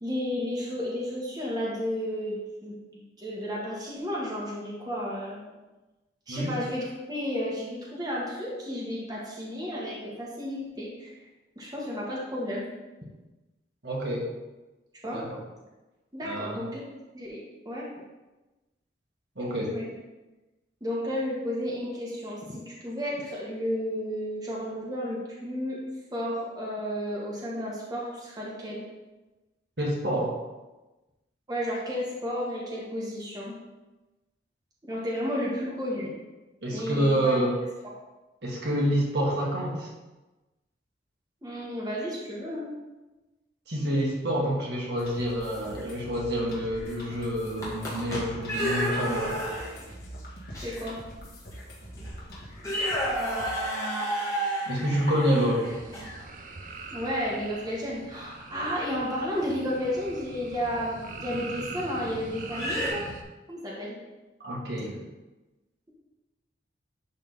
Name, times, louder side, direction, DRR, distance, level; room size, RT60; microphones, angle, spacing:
voice 1, 0.0-5.6 6.3-11.1 11.5-12.6 15.0-15.2 16.1-16.8 17.1-17.4 17.6-17.9 19.5-19.8 20.8-25.8 26.1-28.8 31.5-33.5 34.8-36.1 36.7-37.4 41.4-42.7 50.6-51.0 56.9-63.0 63.5-63.9, equal, 20° right, -5 dB, 1.4 m, -32 dB
voice 2, 13.8-14.3 15.1-15.4 16.2-16.6 19.4-19.7 29.8-30.4 36.6-37.6 38.4-39.9 43.7-49.4 54.7-55.7 64.4-65.1, equal, 65° right, -3 dB, 1.8 m, -28 dB
sound 1, 45.0-53.6, equal, 55° left, 1.8 m, -44 dB
sound 2, 47.4-49.9 50.5-50.7 51.5-51.6 52.0-52.2 52.6-56.2 59.4-59.6 61.3-61.4 62.5-62.9, equal, 15° left, 1.7 m, -31 dB
sound 3, 55.6-63.2, right 3 dB, 45° right, 0.7 m, -42 dB
11.0 x 3.7 x 4.0 m, 1.1 s
head